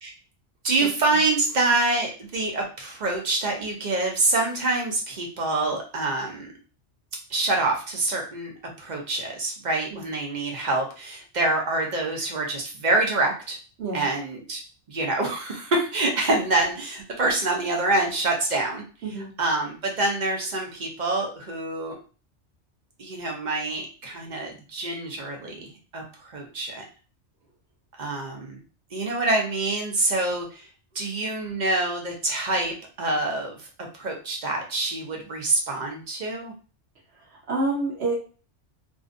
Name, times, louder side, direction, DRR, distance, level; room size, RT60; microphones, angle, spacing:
voice 1, 0.6-6.5 7.3-13.6 13.9-14.6 14.9-18.8 19.4-22.0 23.0-26.8 28.0-28.6 28.9-30.7 30.9-33.7 33.9-36.5, right 2 dB, 45° right, 1 dB, 0.6 m, -26 dB
voice 2, 37.2-38.1, right 2 dB, 65° right, -3 dB, 1.0 m, -28 dB
2.5 x 2.2 x 2.5 m, 0.36 s
omnidirectional pair, 1.2 m